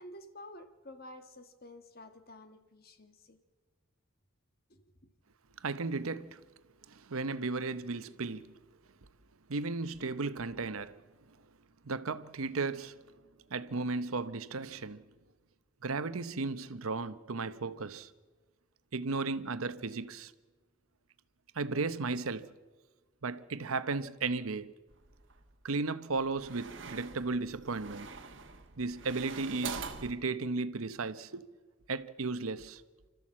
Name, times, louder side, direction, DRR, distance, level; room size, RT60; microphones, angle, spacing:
voice 1, 0.0-3.4 4.7-4.8, left 1 dB, 45° left, 1.5 m, -51 dB
voice 2, 5.6-6.4 6.9-8.6 9.5-11.0 11.8-13.0 13.5-15.0 15.8-18.1 18.9-20.3 21.5-22.5 23.2-24.7 25.6-28.1 28.8-31.4 31.9-32.8, right 3 dB, 85° right, 0.9 m, -35 dB
sound 1, 24.9-25.5 26.2-30.1, right 5 dB, 60° right, 1.4 m, -44 dB
29.5 x 13.5 x 7.5 m
head